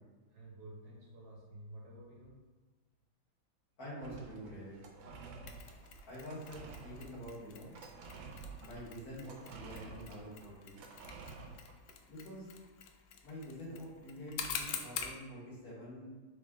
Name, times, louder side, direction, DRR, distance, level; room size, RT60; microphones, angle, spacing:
voice 1, 0.3-2.4, right 1 dB, 60° right, -4 dB, 1.3 m, -51 dB
voice 2, 3.8-4.8 6.1-7.8 8.6-10.9 12.1-12.5 13.2-16.1, equal, 55° left, -6 dB, 1.7 m, -47 dB
sound 1, 4.0-11.9, right 4 dB, 80° right, 1.3 m, -51 dB
Mechanisms, 5.5-15.2, left 7 dB, 90° left, 1.4 m, -47 dB
3.7 x 3.6 x 3.6 m, 1.3 s
omnidirectional pair, 2.1 m